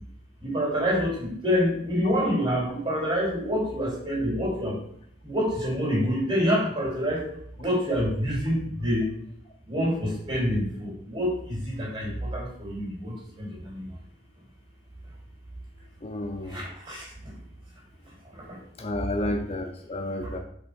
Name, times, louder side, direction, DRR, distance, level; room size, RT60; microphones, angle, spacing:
voice 1, 0.4-4.8 5.2-7.3 7.6-9.1 9.7-13.8 16.5-17.3 18.3-18.6 20.2-20.4, equal, 25° right, -4 dB, 3.7 m, -27 dB
voice 2, 16.0-16.6 18.8-20.4, left 1 dB, 30° left, 5 dB, 0.6 m, -31 dB
6.8 x 5.3 x 5.3 m, 0.68 s
head